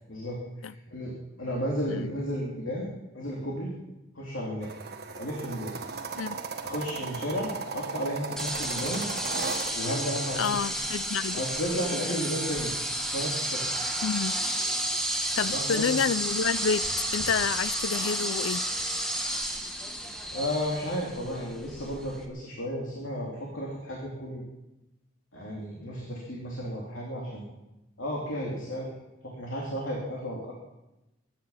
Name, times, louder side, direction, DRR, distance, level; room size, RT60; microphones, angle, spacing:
voice 1, 0.1-3.7 4.1-4.7 5.2-5.7 6.6-9.1 9.7-10.5 11.3-12.7 13.0-13.6 15.4-15.9 20.3-24.4 25.3-27.5 28.0-28.9 29.2-30.5, equal, 75° left, 3.1 m, -33 dB
sound 1, 4.6-9.7, right 4 dB, 55° right, 1.6 m, -36 dB
sound 2, 8.4-22.2, right 1 dB, 5° left, 1.8 m, -31 dB
voice 2, 10.4-11.4 14.0-14.4 15.4-16.9 17.1-18.6, left 6 dB, 90° left, 0.5 m, -29 dB
24.0 x 10.5 x 5.7 m
head